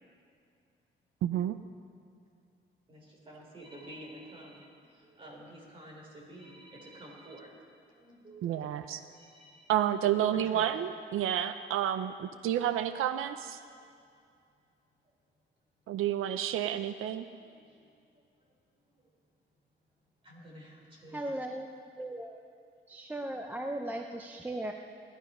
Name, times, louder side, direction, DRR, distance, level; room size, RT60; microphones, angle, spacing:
voice 1, 1.2-1.6 8.4-9.0 9.7-13.6 15.9-17.3, right 10 dB, 90° right, 10 dB, 0.5 m, -30 dB
voice 2, 2.9-7.5 7.9-9.9 10.3-10.9 13.7-13.8 17.4-18.1 18.4-18.5 18.9-19.1 20.2-21.3, right 1 dB, 25° right, -2 dB, 3.2 m, -51 dB
voice 3, 21.1-21.7 22.0-22.4 22.9-24.7, right 1 dB, 10° right, 3 dB, 0.5 m, -37 dB
16.5 x 12.0 x 5.4 m, 2.4 s
cardioid pair, 180°, 21 cm